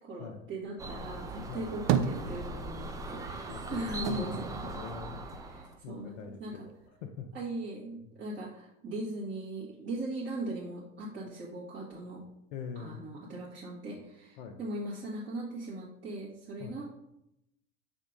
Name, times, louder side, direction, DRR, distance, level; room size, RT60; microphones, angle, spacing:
voice 1, 0.0-4.4 5.4-6.5 7.3-12.2 12.8-16.8, right 1 dB, 30° right, -8 dB, 1.9 m, -39 dB
sound 1, 0.8-5.8, right 2 dB, 10° right, 0.4 m, -40 dB
sound 2, 1.4-2.9 3.2-5.6 6.0-6.9, right 9 dB, 45° right, 0.6 m, -34 dB
voice 2, 3.5-5.2 5.6-6.7 7.0-7.3 8.0-8.1 12.5-13.0 14.4-14.6 16.6-16.8, left 6 dB, 60° left, 3 dB, 0.8 m, -43 dB
6.8 x 3.6 x 3.9 m, 0.83 s
hypercardioid pair, 95°, 40 cm